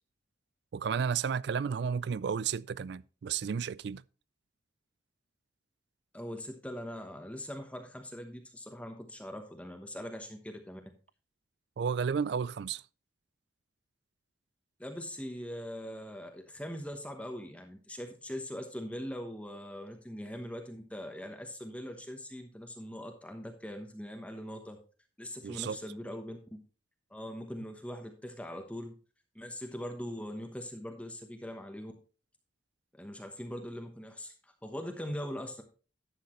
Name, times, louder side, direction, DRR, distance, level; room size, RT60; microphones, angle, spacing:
voice 1, 0.7-4.0 11.8-12.8 25.4-26.2, right 6 dB, 60° right, 0.3 m, -33 dB
voice 2, 6.1-10.8 14.8-24.8 25.2-26.6 27.1-29.0 29.3-31.9 32.9-35.6, equal, 5° left, 1.0 m, -41 dB
11.5 x 8.2 x 3.1 m
head